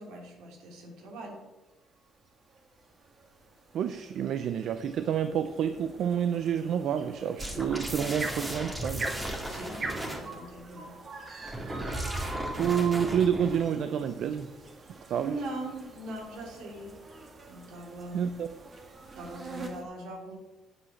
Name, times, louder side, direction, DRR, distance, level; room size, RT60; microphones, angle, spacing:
voice 1, 0.0-1.4 9.5-11.0 15.2-16.9 17.5-18.4 19.2-20.4, right 1 dB, 85° right, 0 dB, 3.0 m, -41 dB
sound 1, 2.5-19.8, right 3 dB, 35° right, 1.8 m, -44 dB
voice 2, 3.7-9.1 12.5-14.5 15.1-15.4 18.1-18.5, right 8 dB, 65° right, 10 dB, 0.5 m, -29 dB
sound 2, 7.4-10.3 11.4-13.6, right 1 dB, 10° right, 2.0 m, -35 dB
8.9 x 7.5 x 6.4 m, 1.2 s
cardioid pair, 120°, 0 cm